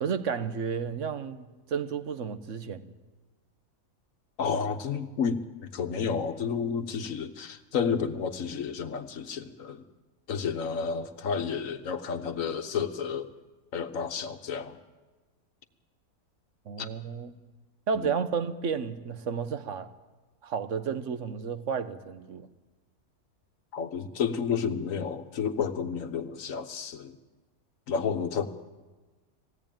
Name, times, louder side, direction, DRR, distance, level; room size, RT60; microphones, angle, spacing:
voice 1, 0.0-2.9 16.7-17.4 17.9-19.9 20.4-22.5, right 6 dB, 55° right, 1.3 m, -32 dB
voice 2, 4.4-5.4 5.7-9.8 10.3-13.3 13.7-14.8 16.8-16.9 17.9-18.1 23.7-27.2 27.9-28.5, left 6 dB, 60° left, 1.5 m, -31 dB
21.0 x 17.0 x 9.0 m
omnidirectional pair, 1.6 m